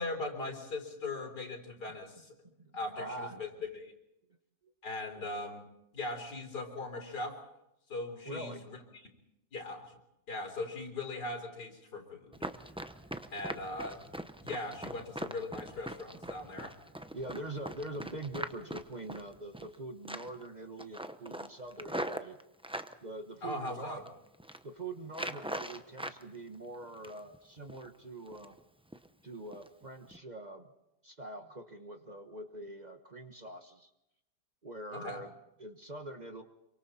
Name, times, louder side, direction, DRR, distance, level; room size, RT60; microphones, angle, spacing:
voice 1, 0.0-2.3 2.7-3.9 4.8-5.6 5.9-7.4 7.9-8.8 9.5-9.8 10.3-12.4 13.3-14.0 14.4-16.8 23.4-24.0 34.9-35.2, left 2 dB, 85° left, 3 dB, 4.3 m, -39 dB
voice 2, 2.4-3.4 4.6-4.7 8.3-8.6 17.1-22.4 23.0-24.0 24.6-28.5 29.2-30.7 31.0-33.9 34.6-35.3 35.6-36.4, right 2 dB, 30° right, 5 dB, 1.2 m, -44 dB
Run, 12.3-19.8 20.1-20.5 20.8-22.9 23.5-24.1 24.3-24.6 25.1-26.2 26.5-27.4 27.7-27.9 28.3-28.6 28.9-29.1 29.5-29.7 30.1-30.2, right 1 dB, 5° right, 0.4 m, -41 dB
27.0 x 24.0 x 4.3 m, 0.85 s
omnidirectional pair, 1.7 m